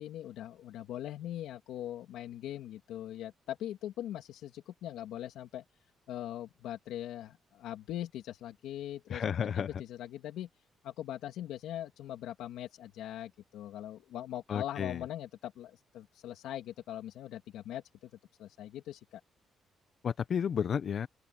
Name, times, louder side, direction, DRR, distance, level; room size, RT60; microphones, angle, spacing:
voice 1, 0.0-5.6 6.1-9.2 9.5-10.5 10.8-18.1 18.4-19.2, left 12 dB, 85° left, 2.5 m, -41 dB
voice 2, 9.1-9.7 14.5-15.0 20.0-21.1, left 7 dB, 55° left, 0.7 m, -32 dB
open air
cardioid pair, 90°, 0 cm